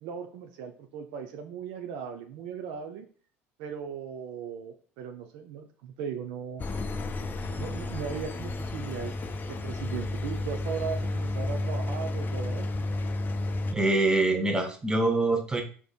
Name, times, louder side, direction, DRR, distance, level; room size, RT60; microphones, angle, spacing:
voice 1, 0.0-3.1 3.6-6.6 7.6-9.2 9.5-12.7, right 7 dB, 55° right, 5 dB, 0.5 m, -37 dB
Engine, 6.6-13.7, left 2 dB, 25° left, 0.5 m, -32 dB
voice 2, 13.7-15.6, right 2 dB, 10° right, 5 dB, 0.9 m, -24 dB
4.9 x 3.4 x 2.4 m, 0.41 s
figure-of-eight pair, 65°, 7 cm